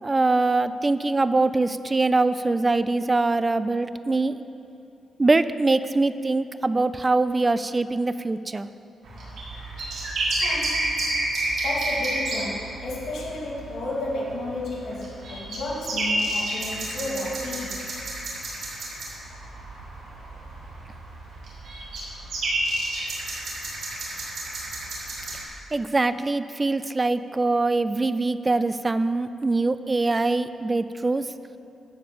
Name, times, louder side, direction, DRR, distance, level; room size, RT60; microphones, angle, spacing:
voice 1, 0.0-4.4 5.2-8.7 25.7-31.3, right 3 dB, 20° right, 13 dB, 0.3 m, -23 dB
sound 1, 9.0-25.4, right 1 dB, 70° right, 3.0 m, -30 dB
voice 2, 10.4-11.0 11.6-17.9, left 2 dB, 65° left, -5 dB, 2.8 m, -32 dB
13.5 x 5.3 x 7.7 m, 2.8 s
cardioid pair, 145°, 0 cm